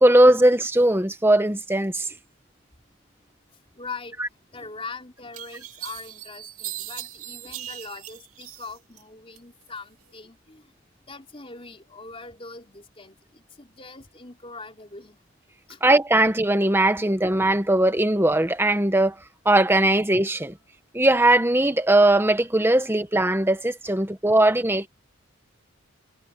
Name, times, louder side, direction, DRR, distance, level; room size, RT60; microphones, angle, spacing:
voice 1, 0.0-2.0 15.8-19.1 19.4-20.5 20.9-24.9, right 1 dB, 10° right, 1.3 m, -19 dB
voice 2, 3.8-4.2 4.5-10.6 11.1-15.2 15.7-15.8 23.8-23.9, left 4 dB, 25° left, 4.1 m, -41 dB
sound 1, 4.6-4.7 5.3-9.0 9.4-10.1, right 14 dB, 80° right, 2.8 m, -39 dB
head